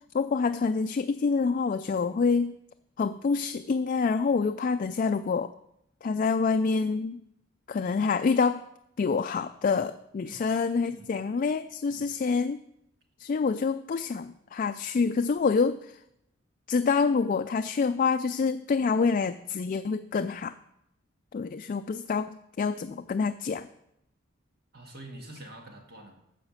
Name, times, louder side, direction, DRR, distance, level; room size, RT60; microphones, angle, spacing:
voice 1, 0.1-2.5 3.0-5.5 6.0-7.2 7.7-8.6 9.0-12.6 13.2-16.0 16.7-20.5 21.3-23.7, left 5 dB, 45° left, 9 dB, 0.3 m, -27 dB
voice 2, 24.7-26.2, right 1 dB, 55° right, 2 dB, 1.8 m, -46 dB
14.5 x 5.0 x 6.4 m, 0.80 s
head